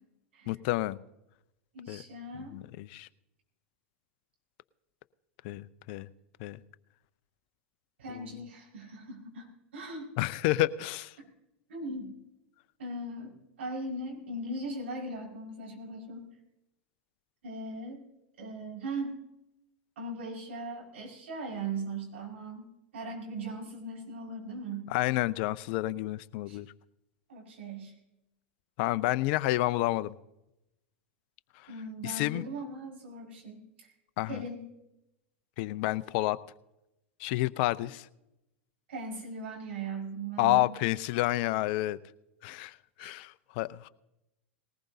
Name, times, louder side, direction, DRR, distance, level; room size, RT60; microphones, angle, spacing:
voice 1, 0.5-1.0 1.9-2.0 2.5-3.1 5.4-6.1 6.4-6.6 8.1-8.3 10.2-11.1 24.9-26.7 28.8-30.2 32.0-32.4 34.2-34.4 35.6-36.4 37.2-38.1 40.4-42.0 42.4-43.9, left 17 dB, 55° left, 15 dB, 0.6 m, -29 dB
voice 2, 1.7-2.6 8.0-10.1 11.2-11.3 11.7-12.1 12.8-16.3 17.4-18.0 18.4-19.2 20.0-24.9 26.5-26.6 27.3-27.9 31.7-33.6 34.3-34.7 37.8-37.9 38.9-40.7 43.0-43.1, right 2 dB, 75° right, -1 dB, 5.3 m, -39 dB
19.5 x 19.0 x 2.8 m, 0.90 s
hypercardioid pair, 95°, 7 cm